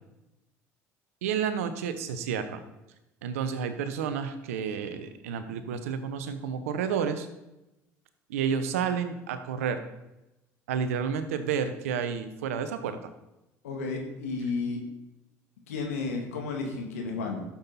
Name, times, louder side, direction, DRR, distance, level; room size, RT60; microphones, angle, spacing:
voice 1, 1.2-2.6 3.2-7.3 8.3-9.8 10.7-13.0, right 7 dB, 85° right, 10 dB, 1.0 m, -30 dB
voice 2, 13.6-14.8 15.7-17.4, left 4 dB, 90° left, 2 dB, 2.1 m, -32 dB
11.5 x 7.3 x 4.2 m, 0.95 s
hypercardioid pair, 75°, 7 cm